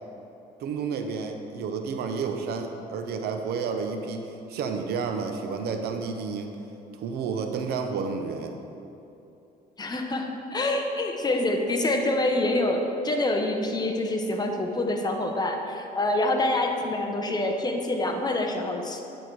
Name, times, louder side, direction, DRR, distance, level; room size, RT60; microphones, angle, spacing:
voice 1, 0.6-6.6 7.0-8.6, right 5 dB, 70° right, 5 dB, 0.7 m, -31 dB
voice 2, 9.8-19.0, left 1 dB, 25° left, 3 dB, 0.8 m, -26 dB
9.9 x 4.4 x 4.6 m, 2.8 s
cardioid pair, 110°, 17 cm